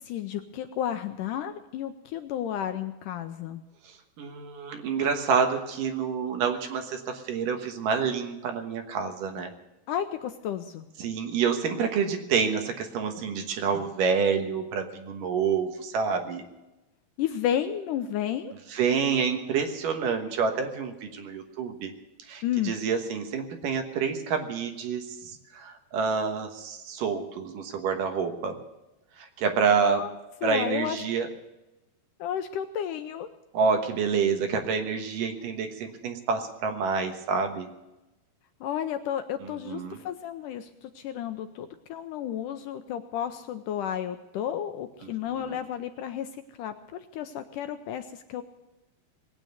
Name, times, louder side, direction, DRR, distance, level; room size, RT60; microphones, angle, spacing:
voice 1, 0.0-3.6 9.9-10.9 17.2-18.5 22.4-22.8 29.8-30.1 30.4-31.0 32.2-33.3 38.6-46.3 46.6-46.7 47.1-48.4, left 10 dB, 80° left, 8 dB, 2.0 m, -32 dB
voice 2, 4.2-9.5 11.0-16.4 18.7-21.9 22.3-28.6 29.2-30.0 30.4-31.3 33.5-37.7 39.4-40.0 45.0-45.6, right 6 dB, 70° right, 5 dB, 2.8 m, -28 dB
20.0 x 9.1 x 8.0 m, 0.97 s
omnidirectional pair, 4.2 m